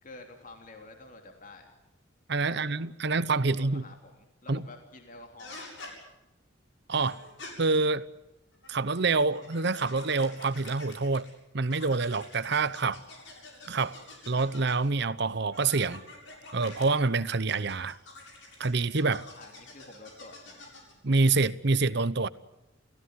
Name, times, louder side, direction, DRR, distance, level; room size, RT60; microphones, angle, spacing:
voice 1, 0.0-1.7 2.4-2.7 3.5-5.7 19.4-20.7, left 2 dB, 45° left, 3.3 m, -49 dB
voice 2, 2.3-3.8 4.5-4.6 6.9-7.2 7.6-8.0 8.7-11.3 11.5-13.0 13.7-14.0 14.3-16.0 16.5-18.0 18.6-19.3 21.0-22.3, right 3 dB, 60° right, 0.9 m, -26 dB
sound 1, 5.4-5.9 6.9-7.5 8.5-11.3 11.6-14.9 15.5-16.9 17.5-20.9, left 2 dB, 70° left, 7.7 m, -47 dB
30.0 x 16.0 x 9.6 m
head